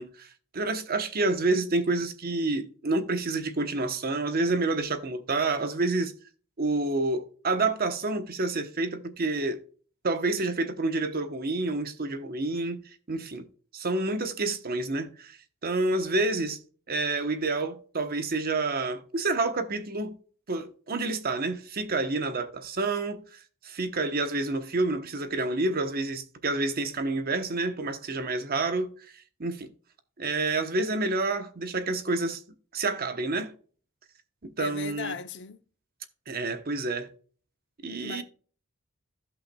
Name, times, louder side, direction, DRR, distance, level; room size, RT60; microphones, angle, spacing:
voice 1, 0.0-6.1 6.6-9.6 10.0-12.8 13.1-13.5 13.7-16.6 16.9-20.1 20.5-28.9 29.4-29.7 30.2-32.4 32.7-33.5 34.4-35.2 36.3-37.1 37.8-38.2, right 3 dB, 45° right, 1.0 m, -28 dB
voice 2, 34.6-35.6 38.0-38.2, left 5 dB, 55° left, 0.7 m, -36 dB
16.0 x 5.5 x 2.3 m
head